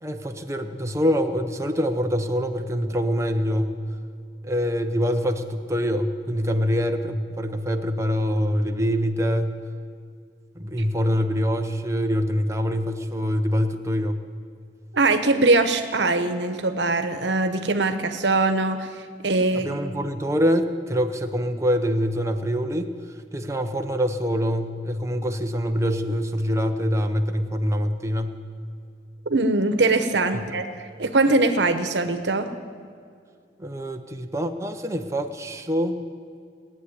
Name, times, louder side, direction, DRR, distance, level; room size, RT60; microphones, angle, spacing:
voice 1, 0.0-3.8 4.4-9.6 10.6-14.2 19.5-22.9 23.3-28.4 30.3-30.4 33.6-36.0, equal, 15° right, 5 dB, 0.8 m, -25 dB
voice 2, 14.9-18.9 19.2-19.7 29.3-30.7 31.0-32.5, right 2 dB, 85° right, 8 dB, 1.1 m, -21 dB
17.5 x 8.1 x 9.9 m, 2.2 s
head